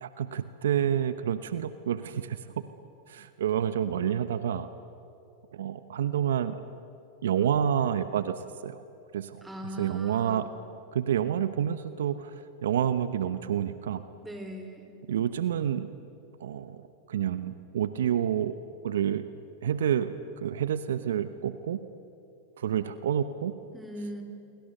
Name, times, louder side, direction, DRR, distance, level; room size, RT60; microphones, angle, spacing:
voice 1, 0.0-2.4 3.1-4.7 5.5-6.6 7.2-8.4 8.6-8.8 9.1-9.4 9.8-10.5 10.9-12.3 12.6-14.0 15.1-15.9 16.4-18.5 18.8-19.2 19.6-20.1 20.4-21.8 22.6-23.5, right 9 dB, 75° right, 12 dB, 0.9 m, -28 dB
voice 2, 9.4-10.5 14.2-14.9 23.7-24.2, equal, 10° right, 5 dB, 4.1 m, -40 dB
26.5 x 23.5 x 6.8 m, 2.7 s
hypercardioid pair, 100°, 0 cm